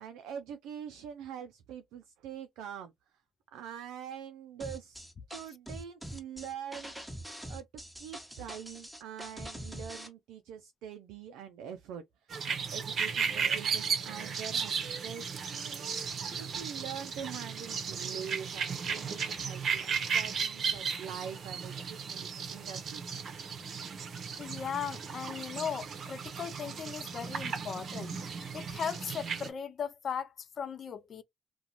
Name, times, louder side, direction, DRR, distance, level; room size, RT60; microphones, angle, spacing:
voice 1, 0.0-2.9 3.5-6.9 7.5-7.7 8.0-23.2, right 8 dB, 85° right, 0.3 m, -44 dB
sound 1, 4.6-10.1, equal, 5° right, 1.0 m, -44 dB
sound 2, 12.3-29.5, right 6 dB, 60° right, 0.7 m, -35 dB
voice 2, 24.4-28.2 28.5-31.2, left 7 dB, 60° left, 0.4 m, -38 dB
2.4 x 2.2 x 2.8 m
supercardioid pair, 60°, 0 cm